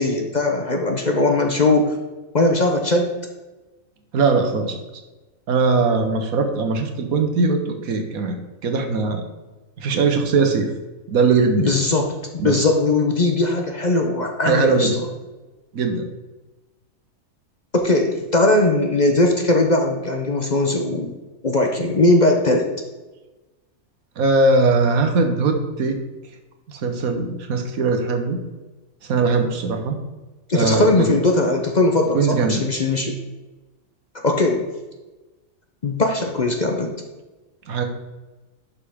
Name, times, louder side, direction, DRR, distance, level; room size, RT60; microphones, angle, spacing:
voice 1, 0.0-1.9 2.3-3.1 11.6-12.2 12.4-14.9 17.7-21.1 21.4-22.7 30.5-33.2 34.2-34.6 35.8-36.9, left 2 dB, 35° left, 3 dB, 0.8 m, -19 dB
voice 2, 4.1-4.8 5.5-9.2 9.8-10.7 11.1-11.7 12.4-12.7 14.4-14.9 15.7-16.1 24.2-26.0 26.7-28.4 29.0-30.0 30.5-31.1 32.1-32.6 37.7-37.8, right 4 dB, 80° right, 5 dB, 1.5 m, -20 dB
11.5 x 5.7 x 3.6 m, 1.2 s
omnidirectional pair, 1.5 m